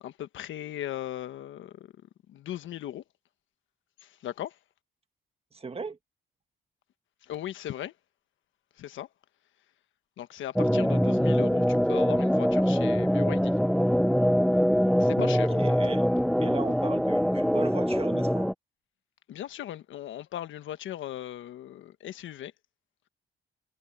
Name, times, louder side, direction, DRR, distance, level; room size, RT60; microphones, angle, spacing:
voice 1, 0.0-1.9 2.3-3.0 4.0-4.6 7.2-7.9 8.8-9.1 10.2-13.6 15.0-15.6 19.3-22.5, left 12 dB, 75° left, 1.4 m, -38 dB
voice 2, 5.5-6.0 10.7-10.9 15.3-16.1 16.4-18.5, right 4 dB, 30° right, 1.7 m, -37 dB
sound 1, 10.6-18.5, equal, ahead, 0.8 m, -24 dB
cardioid pair, 90°, 20 cm